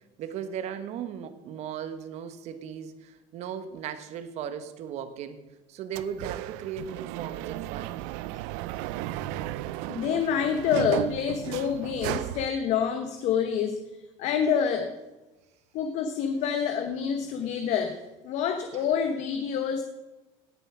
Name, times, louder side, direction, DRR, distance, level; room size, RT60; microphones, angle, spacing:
voice 1, 0.2-5.4 5.7-8.0 18.7-18.8, right 8 dB, 55° right, 11 dB, 1.3 m, -37 dB
sound 1, 5.9-12.5, right 16 dB, 85° right, 0.5 m, -34 dB
voice 2, 9.9-13.8 14.2-14.9 15.7-18.0 18.2-19.8, left 7 dB, 60° left, 7 dB, 1.1 m, -27 dB
17.0 x 7.1 x 6.1 m, 1.1 s
cardioid pair, 135°, 14 cm